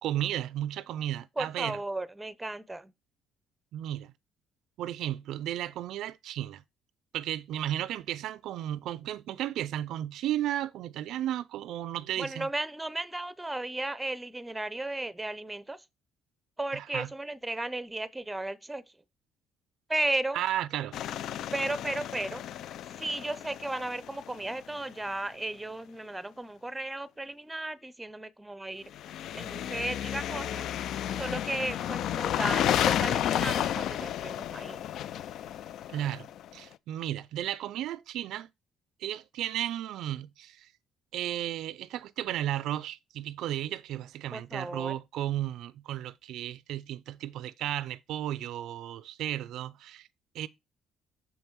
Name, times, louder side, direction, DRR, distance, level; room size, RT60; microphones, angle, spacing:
voice 1, 0.0-1.8 3.7-4.1 4.8-6.6 7.1-12.5 16.7-17.1 20.3-21.0 35.9-38.5 39.0-40.7 41.1-50.1 50.3-50.5, right 12 dB, 75° right, 0.4 m, -34 dB
voice 2, 1.4-2.9 12.2-15.8 16.6-18.8 19.9-20.4 21.5-22.4 23.0-28.9 29.3-30.7 31.1-34.8 44.3-45.0, right 2 dB, 10° right, 0.6 m, -35 dB
sound 1, 20.9-24.8 28.9-36.6, left 10 dB, 70° left, 0.3 m, -32 dB
6.2 x 5.3 x 4.5 m
cardioid pair, 105°, 0 cm